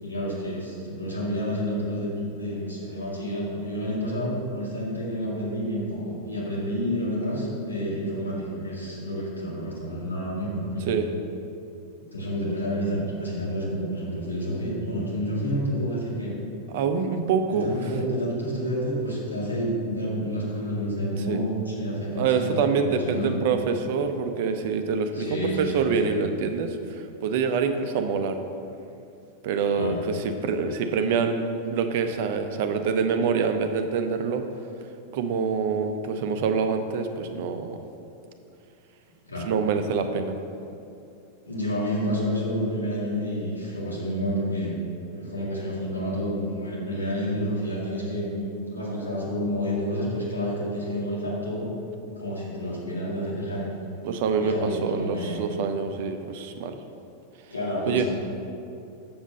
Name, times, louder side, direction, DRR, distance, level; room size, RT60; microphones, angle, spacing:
voice 1, 0.0-10.9 12.0-16.4 17.5-23.3 25.1-26.1 29.7-30.0 39.3-39.5 41.4-44.8 45.1-51.7 52.2-53.7 54.4-55.4 57.5-58.1, equal, 80° left, -5 dB, 2.1 m, -29 dB
voice 2, 16.7-17.8 21.3-21.4 22.2-28.4 29.4-34.5 35.1-37.8 39.5-40.4 54.0-56.8 57.9-58.1, right 5 dB, 50° right, 7 dB, 0.7 m, -26 dB
7.3 x 6.9 x 5.3 m, 2.6 s
figure-of-eight pair, 90°, 0 cm